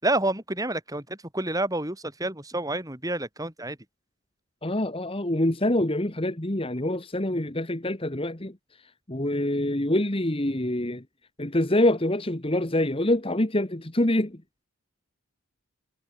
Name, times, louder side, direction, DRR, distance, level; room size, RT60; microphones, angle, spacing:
voice 1, 0.0-3.8, right 2 dB, 15° right, 5.0 m, -29 dB
voice 2, 4.6-8.5 9.1-11.0 11.4-14.4, left 1 dB, 25° left, 1.5 m, -25 dB
head